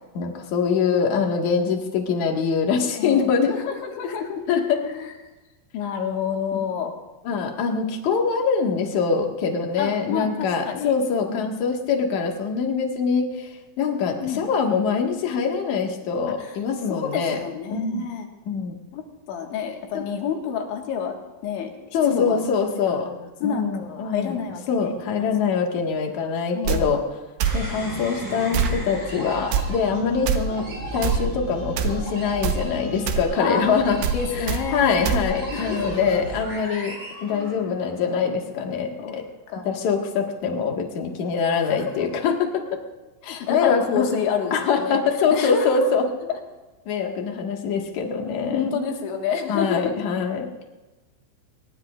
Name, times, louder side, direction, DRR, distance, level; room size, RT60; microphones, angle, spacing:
voice 1, 0.1-3.5 4.5-4.8 6.5-6.6 7.2-17.4 17.7-18.1 18.5-18.8 19.9-20.1 21.9-23.1 23.4-24.4 24.7-27.2 27.5-30.7 30.9-34.0 34.3-39.3 39.7-42.8 43.2-44.1 44.5-46.1 46.9-48.8 49.5-50.5, left 5 dB, 50° left, 1 dB, 2.4 m, -24 dB
voice 2, 3.0-4.4 4.8-5.1 5.7-6.9 9.8-11.0 11.3-11.5 14.2-14.5 16.4-16.5 16.9-18.3 18.9-22.4 22.7-25.3 26.5-27.0 30.0-30.3 33.4-33.7 34.1-34.8 35.5-36.1 37.3-37.7 39.0-39.2 39.5-39.7 41.5-42.1 43.2-45.0 45.3-45.9 48.5-50.1, left 7 dB, 75° left, 2 dB, 3.9 m, -29 dB
sound 1, 26.7-26.8 27.4-27.6 28.5-28.8 29.5-29.7 30.3-30.4 31.0-31.2 31.8-32.0 32.4-32.6 33.1-33.2 34.0-34.2 34.5-34.6 35.1-35.2, right 7 dB, 90° right, 3.7 m, -23 dB
sound 2, 27.4-38.0, right 1 dB, 25° right, 7.4 m, -35 dB
24.5 x 21.5 x 2.6 m, 1.1 s
omnidirectional pair, 5.7 m